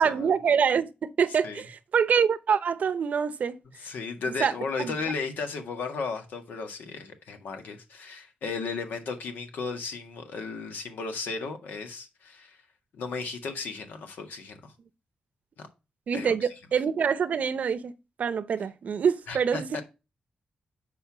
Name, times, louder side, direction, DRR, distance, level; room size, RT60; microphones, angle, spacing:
voice 1, 0.0-3.6 4.4-4.5 4.8-4.9 16.1-17.9 18.2-19.8, right 7 dB, 60° right, 0.7 m, -25 dB
voice 2, 3.8-12.6 12.9-14.7 15.6-15.7 16.1-16.5 19.3-19.8, left 4 dB, 85° left, 1.7 m, -35 dB
6.7 x 4.6 x 5.8 m
wide cardioid pair, 115°, 3 cm